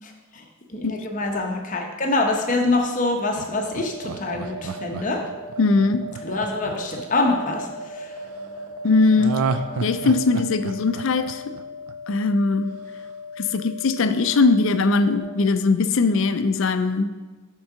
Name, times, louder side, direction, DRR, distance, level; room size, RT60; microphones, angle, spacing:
voice 1, 0.0-5.2 6.2-8.1, left 2 dB, 35° left, 2 dB, 0.8 m, -25 dB
Laughter, 3.4-7.6 9.2-12.2 12.5-12.6, right 5 dB, 85° right, 0.4 m, -30 dB
sound 1, 3.5-15.2, equal, 40° right, 0.8 m, -37 dB
voice 2, 5.6-6.1 8.8-9.4 9.8-11.5 12.1-12.7 13.4-17.1, left 3 dB, 65° left, 11 dB, 0.4 m, -20 dB
7.1 x 3.8 x 5.6 m, 1.2 s
head